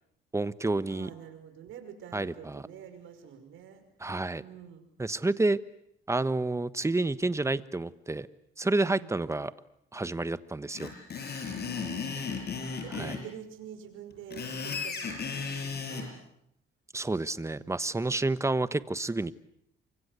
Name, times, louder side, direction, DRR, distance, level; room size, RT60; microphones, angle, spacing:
voice 1, 0.3-1.1 2.1-2.6 4.0-4.4 5.0-5.6 6.1-8.3 8.6-9.5 9.9-10.9 12.9-13.1 16.9-19.3, right 2 dB, 15° right, 14 dB, 1.2 m, -29 dB
voice 2, 0.9-3.8 4.4-4.9 9.0-9.1 11.8-16.2 17.6-17.9, right 9 dB, 85° right, 8 dB, 5.6 m, -47 dB
Screech, 10.7-13.2 14.1-16.1, left 5 dB, 55° left, 7.6 m, -35 dB
28.5 x 24.5 x 8.3 m, 0.73 s
cardioid pair, 90°, 20 cm